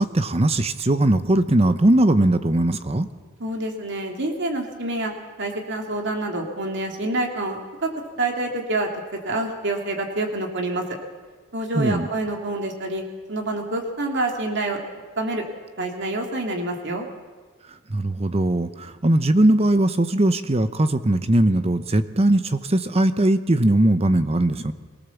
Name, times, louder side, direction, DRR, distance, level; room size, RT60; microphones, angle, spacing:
voice 1, 0.0-3.1 11.7-12.1 17.7-24.7, right 1 dB, 30° right, 11 dB, 0.8 m, -20 dB
voice 2, 3.4-5.1 5.4-7.9 8.2-8.9 9.2-10.8 11.5-13.0 13.3-14.8 15.2-15.4 15.8-17.1, right 2 dB, 55° right, 2 dB, 2.7 m, -27 dB
24.0 x 18.0 x 7.2 m, 1.4 s
head